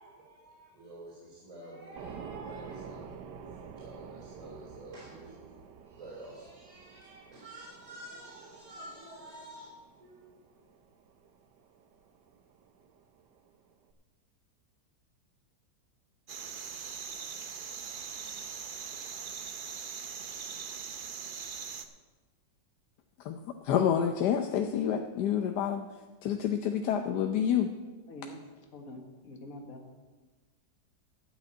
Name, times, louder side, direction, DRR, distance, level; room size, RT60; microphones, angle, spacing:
voice 1, 0.0-5.4 5.8-10.2, right 1 dB, 20° right, -5 dB, 3.9 m, -49 dB
sound 1, 1.9-13.9, right 6 dB, 75° right, 1.5 m, -50 dB
sound 2, 16.3-21.9, right 6 dB, 60° right, 0.5 m, -41 dB
voice 2, 23.6-25.9 26.2-27.7, left 9 dB, 75° left, 5 dB, 1.2 m, -28 dB
voice 3, 28.1-29.9, left 1 dB, 55° left, 3 dB, 1.9 m, -46 dB
12.0 x 6.3 x 8.6 m, 1.3 s
omnidirectional pair, 1.9 m